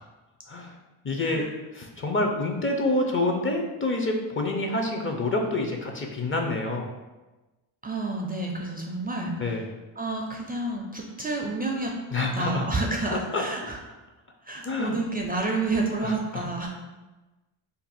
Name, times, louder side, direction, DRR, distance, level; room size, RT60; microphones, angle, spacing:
voice 1, 1.0-1.4 1.7-6.9 9.4-9.6 12.1-12.7 13.1-13.4 14.6-15.0 16.0-16.5, left 2 dB, 30° left, 2 dB, 0.5 m, -27 dB
voice 2, 7.8-9.6 10.0-11.9 12.4-13.8 14.4-16.7, right 2 dB, 20° right, 0 dB, 0.4 m, -29 dB
2.6 x 2.5 x 4.1 m, 1.1 s
cardioid pair, 75°, 43 cm